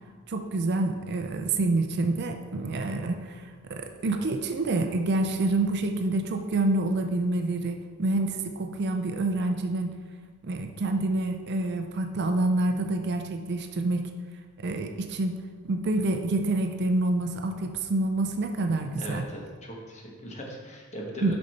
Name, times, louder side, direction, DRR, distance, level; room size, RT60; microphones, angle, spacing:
voice 1, 0.3-10.0 10.4-14.0 14.6-19.3 21.2-21.3, right 2 dB, 50° right, 6 dB, 0.5 m, -27 dB
voice 2, 19.0-21.4, equal, 30° left, -2 dB, 1.2 m, -39 dB
6.5 x 5.4 x 4.2 m, 1.5 s
head